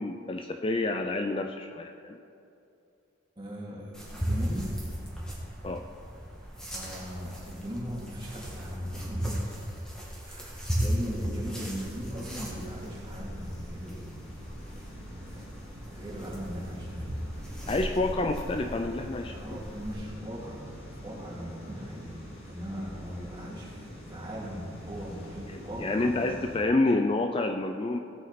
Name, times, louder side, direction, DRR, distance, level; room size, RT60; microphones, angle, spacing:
voice 1, 0.0-2.2 5.6-5.9 17.7-19.3 25.5-28.0, left 2 dB, 25° left, 5 dB, 0.4 m, -28 dB
voice 2, 3.4-4.7 6.7-9.4 10.2-14.1 14.6-14.7 15.3-15.6 15.9-17.1 17.5-18.4 19.2-22.2 22.5-26.3, equal, 25° right, -6 dB, 2.8 m, -39 dB
sound 1, 3.9-19.9, equal, 5° left, 2.0 m, -36 dB
sound 2, 11.4-26.6, equal, 90° left, 3.3 m, -46 dB
16.5 x 8.1 x 4.2 m, 2.6 s
head